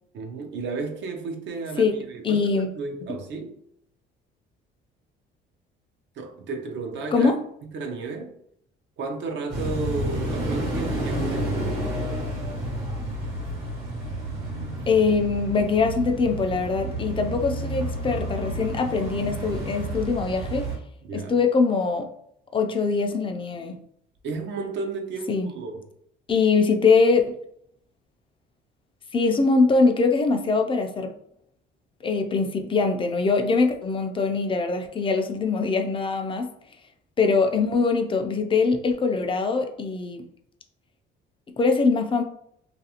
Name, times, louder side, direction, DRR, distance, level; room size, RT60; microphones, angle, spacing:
voice 1, 0.1-3.6 6.1-7.3 7.6-8.4 9.0-11.6 21.0-21.4 24.2-25.9, right 4 dB, 60° right, 0.6 m, -33 dB
voice 2, 2.2-2.7 7.1-7.4 14.9-20.7 21.1-22.1 22.5-23.8 25.3-25.5 26.3-27.3 29.1-31.1 32.0-36.5 37.2-40.2 41.6-42.2, left 4 dB, 25° left, 0.4 m, -22 dB
sound 1, 9.5-20.8, right 1 dB, 85° right, 1.1 m, -30 dB
2.5 x 2.3 x 2.8 m
cardioid pair, 95°, 21 cm